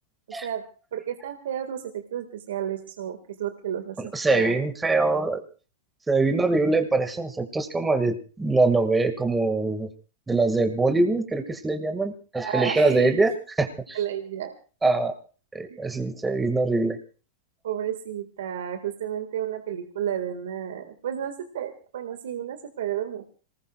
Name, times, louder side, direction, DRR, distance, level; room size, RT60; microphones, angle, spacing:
voice 1, 0.9-4.6 12.4-13.2 13.9-14.5 15.7-15.8 17.6-23.3, right 9 dB, 75° right, 6 dB, 1.8 m, -32 dB
voice 2, 4.0-5.4 6.1-9.9 10.3-13.3 13.6-14.0 14.8-15.2 15.5-17.0, right 3 dB, 10° right, 6 dB, 1.9 m, -23 dB
27.0 x 19.5 x 2.4 m, 0.37 s
hypercardioid pair, 115°, 0 cm